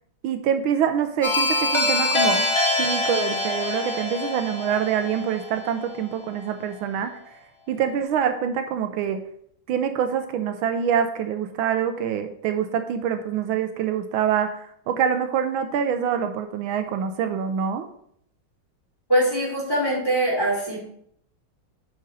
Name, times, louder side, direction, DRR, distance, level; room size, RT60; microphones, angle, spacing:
voice 1, 0.2-2.5 2.8-7.1 7.7-9.2 9.7-17.9, right 8 dB, 80° right, 8 dB, 1.4 m, -25 dB
sound 1, 1.2-6.0, left 2 dB, 30° left, 0.5 m, -24 dB
voice 2, 19.1-20.8, right 1 dB, 10° left, -8 dB, 3.5 m, -22 dB
7.7 x 5.3 x 4.0 m, 0.68 s
omnidirectional pair, 2.3 m